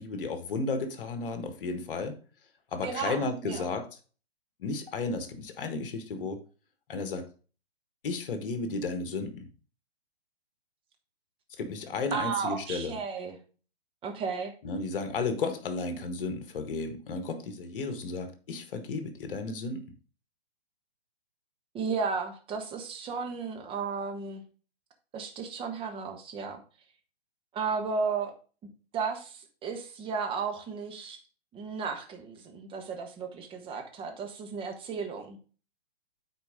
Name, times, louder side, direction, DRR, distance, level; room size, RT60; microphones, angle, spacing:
voice 1, 0.0-2.2 2.7-3.9 4.6-6.4 6.9-7.3 8.0-9.4 11.6-12.9 14.6-19.8, left 3 dB, 60° left, 1.5 m, -33 dB
voice 2, 2.8-3.7 12.1-13.4 14.0-14.5 21.7-24.4 25.1-26.6 27.5-28.3 28.9-31.2 31.5-35.4, right 5 dB, 15° right, 1.3 m, -34 dB
9.0 x 4.5 x 3.6 m
hypercardioid pair, 130°, 32 cm